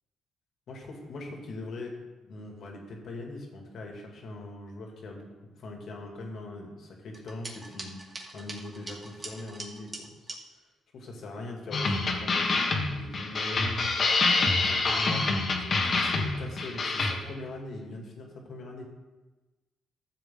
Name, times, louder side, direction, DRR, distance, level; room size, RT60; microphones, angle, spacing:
voice 1, 0.7-1.9 2.2-5.3 5.6-8.0 8.3-10.3 10.9-13.9 14.4-18.8, left 2 dB, 65° left, 1 dB, 2.5 m, -41 dB
sound 1, 7.1-10.4, right 2 dB, 25° right, 2.3 m, -43 dB
sound 2, 11.7-17.1, left 3 dB, 45° left, 1.6 m, -26 dB
13.5 x 7.6 x 3.9 m, 1.2 s
cardioid pair, 90°, 0 cm